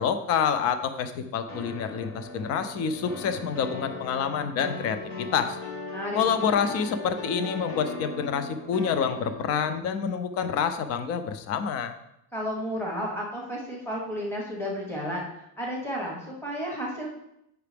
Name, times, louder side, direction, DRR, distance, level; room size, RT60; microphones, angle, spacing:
voice 1, 0.0-5.6 6.1-11.9, left 7 dB, 40° left, 9 dB, 0.5 m, -27 dB
sound 1, 1.5-9.8, left 3 dB, 70° left, 2.0 m, -38 dB
voice 2, 5.9-6.4 12.3-15.3 15.6-17.1, equal, 5° left, -2 dB, 1.2 m, -32 dB
7.8 x 5.8 x 3.4 m, 0.80 s
cardioid pair, 155°, 40 cm